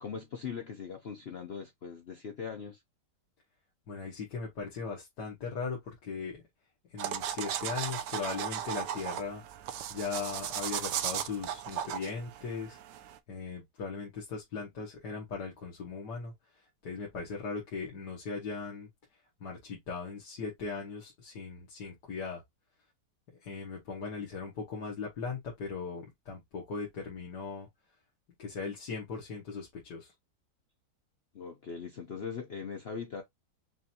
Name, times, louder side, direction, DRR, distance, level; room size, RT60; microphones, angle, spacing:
voice 1, 0.0-2.8 31.3-33.2, left 6 dB, 50° left, 0.8 m, -40 dB
voice 2, 3.9-6.4 6.9-9.4 9.9-18.9 19.4-22.4 23.4-27.7 28.4-30.1, left 5 dB, 70° left, 2.0 m, -39 dB
sound 1, 7.0-13.2, right 10 dB, 80° right, 1.2 m, -36 dB
6.0 x 2.6 x 2.8 m
omnidirectional pair, 1.8 m